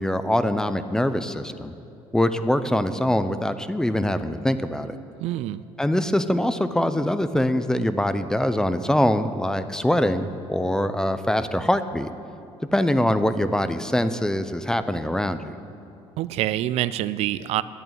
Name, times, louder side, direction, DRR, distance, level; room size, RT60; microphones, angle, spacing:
voice 1, 0.0-1.7 2.1-4.9 5.8-12.1 12.7-15.5, left 1 dB, 5° left, 11 dB, 0.5 m, -23 dB
voice 2, 5.2-5.6 16.2-17.6, right 14 dB, 70° right, 15 dB, 0.4 m, -26 dB
11.0 x 8.6 x 8.9 m, 2.6 s
cardioid pair, 130°, 11 cm